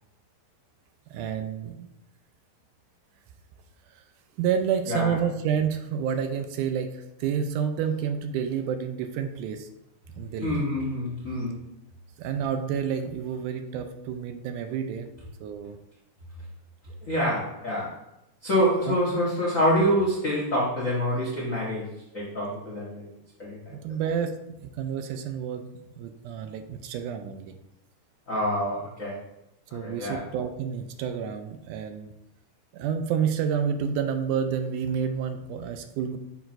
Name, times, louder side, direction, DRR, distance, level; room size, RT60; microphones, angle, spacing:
voice 1, 1.1-1.9 4.0-4.1 4.4-9.7 10.2-10.6 12.2-15.1 15.4-15.8 18.9-19.0 23.7-25.7 26.0-27.5 29.7-32.1 32.7-36.2, right 7 dB, 80° right, 7 dB, 2.0 m, -29 dB
voice 2, 10.4-11.6 17.0-18.0 18.4-23.1 23.4-23.8 28.3-29.2 29.7-30.2, equal, 65° left, -6 dB, 0.7 m, -26 dB
6.9 x 5.9 x 2.6 m, 0.84 s
omnidirectional pair, 3.7 m